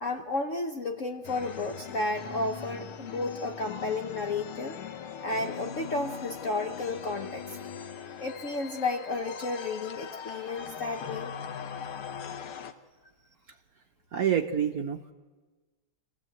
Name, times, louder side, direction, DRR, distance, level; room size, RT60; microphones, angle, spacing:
voice 1, 0.0-4.8 5.2-7.4 8.2-11.3, left 2 dB, 55° left, 4 dB, 0.9 m, -32 dB
sound 1, 1.2-12.7, left 7 dB, 85° left, 1.9 m, -40 dB
voice 2, 14.1-15.1, right 9 dB, 60° right, 5 dB, 1.0 m, -27 dB
25.5 x 15.0 x 7.8 m, 1.3 s
omnidirectional pair, 2.3 m